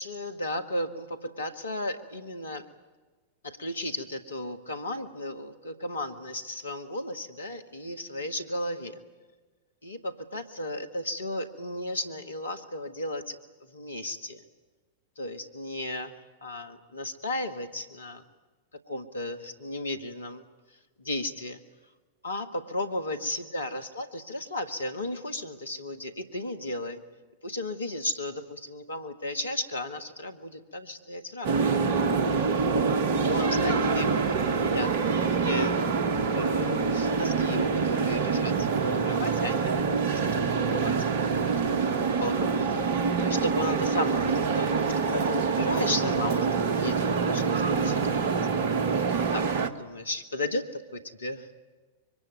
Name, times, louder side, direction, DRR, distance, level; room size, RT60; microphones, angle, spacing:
voice 1, 0.0-2.7 3.4-9.0 9.8-13.4 13.7-14.4 15.2-16.2 16.4-18.2 18.9-20.4 21.0-21.6 22.2-27.0 27.4-31.9 33.2-35.7 36.2-41.2 41.4-41.8 42.2-48.3 49.0-49.5 49.7-51.5, left 1 dB, 75° left, 9 dB, 1.9 m, -34 dB
sound 1, 31.4-49.7, right 5 dB, 55° right, 1.5 m, -26 dB
25.0 x 23.0 x 9.3 m, 1.3 s
figure-of-eight pair, 95°, 0 cm